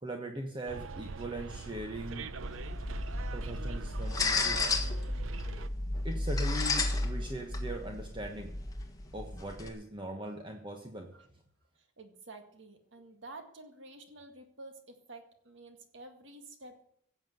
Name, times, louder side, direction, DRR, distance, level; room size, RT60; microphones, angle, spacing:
voice 1, 0.0-2.3 3.3-4.6 6.0-8.5 9.1-11.1, right 1 dB, 25° right, 2 dB, 1.2 m, -40 dB
Bus, 0.7-5.7, right 3 dB, 90° right, 0.7 m, -42 dB
sound 1, 2.4-9.7, left 2 dB, 20° left, 1.7 m, -33 dB
voice 2, 11.8-16.8, right 2 dB, 65° right, 6 dB, 1.9 m, -50 dB
16.5 x 7.4 x 7.9 m, 0.67 s
head